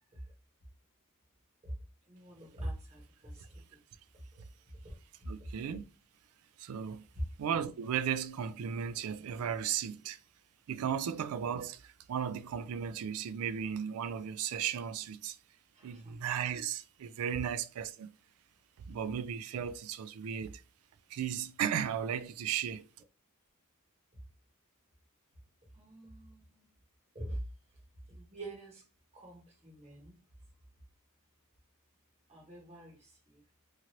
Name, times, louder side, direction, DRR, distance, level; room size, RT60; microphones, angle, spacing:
voice 1, 2.1-3.4 4.3-4.4 4.8-4.9 15.8-16.1 25.7-26.7 27.1-27.4 28.2-28.8 29.1-30.1 32.3-33.4, right 1 dB, 30° right, 1.0 m, -45 dB
voice 2, 5.3-5.8 6.6-7.0 7.4-10.2 10.7-11.8 12.1-15.4 15.8-18.1 18.9-20.5 21.1-22.8, right 8 dB, 75° right, 0.3 m, -35 dB
2.9 x 2.5 x 2.9 m
head